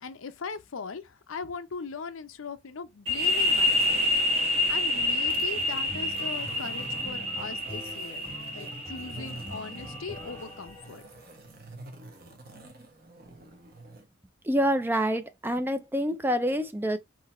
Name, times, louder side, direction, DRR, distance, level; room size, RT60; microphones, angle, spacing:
voice 1, 0.0-4.1 4.7-11.0, left 5 dB, 90° left, 0.6 m, -40 dB
sound 1, 3.1-10.5, left 2 dB, 30° right, 1.0 m, -28 dB
sound 2, 3.5-3.9 4.4-11.6, equal, 15° left, 0.9 m, -45 dB
sound 3, 4.3-14.1, right 2 dB, 50° right, 1.1 m, -49 dB
voice 2, 14.4-17.0, equal, 10° right, 0.4 m, -27 dB
3.8 x 2.8 x 4.2 m
head